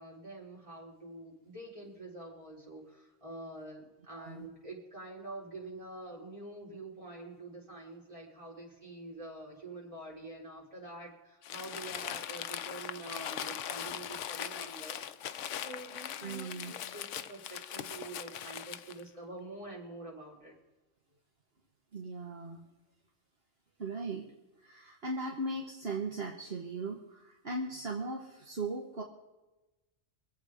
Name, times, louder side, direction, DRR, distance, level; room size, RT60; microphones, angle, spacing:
voice 1, 0.0-15.0 15.6-20.5, right 2 dB, 25° right, -4 dB, 4.4 m, -46 dB
voice 2, 4.1-4.5 16.2-16.8 21.9-22.6 23.8-24.3 24.6-29.0, right 2 dB, 55° right, 0 dB, 1.7 m, -38 dB
Crumpling crinkling, 11.4-19.0, left 10 dB, 85° left, 1.0 m, -40 dB
24.5 x 8.3 x 5.0 m, 1.1 s
omnidirectional pair, 1.2 m